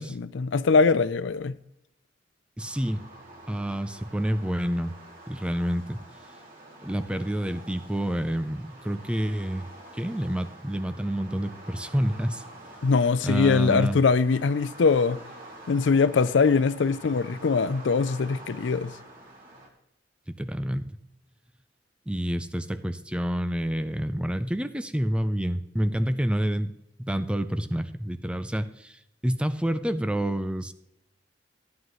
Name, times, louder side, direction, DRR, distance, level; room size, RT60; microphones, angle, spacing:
voice 1, 0.0-1.6 12.8-15.2 15.7-18.9, left 4 dB, 85° left, 0.5 m, -22 dB
voice 2, 2.6-3.0 3.5-5.0 5.3-6.0 6.8-9.7 9.9-12.4 13.2-14.0 20.4-20.8 22.1-26.7 27.0-30.7, equal, 5° right, 0.5 m, -28 dB
sound 1, 2.6-19.7, right 1 dB, 50° right, 2.4 m, -47 dB
14.0 x 9.3 x 3.1 m
head